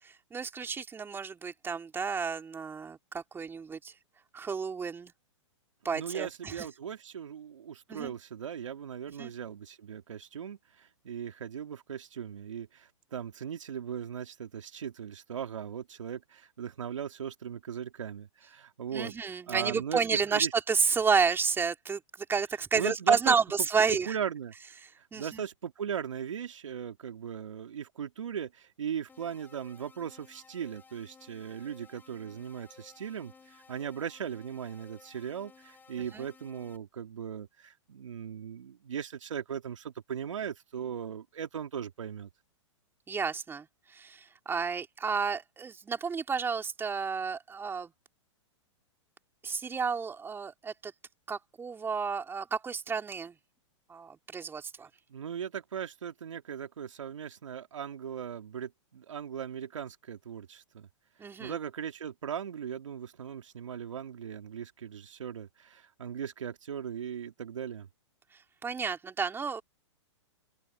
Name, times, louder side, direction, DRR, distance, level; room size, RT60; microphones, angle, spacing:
voice 1, 0.3-3.9 4.3-5.1 5.8-6.7 7.9-8.1 9.2-9.3 18.9-22.0 22.3-24.2 25.1-25.4 36.1-36.3 43.1-43.7 43.9-47.9 49.4-50.9 51.3-53.3 53.9-54.9 61.2-61.5 68.6-69.6, right 5 dB, 15° right, 3.0 m, -31 dB
voice 2, 5.9-20.5 22.7-24.5 25.0-42.3 55.1-60.9 61.4-67.9, right 8 dB, 80° right, 2.8 m, -38 dB
sound 1, 29.1-36.8, left 5 dB, 10° left, 5.2 m, -57 dB
open air
hypercardioid pair, 125°, 16 cm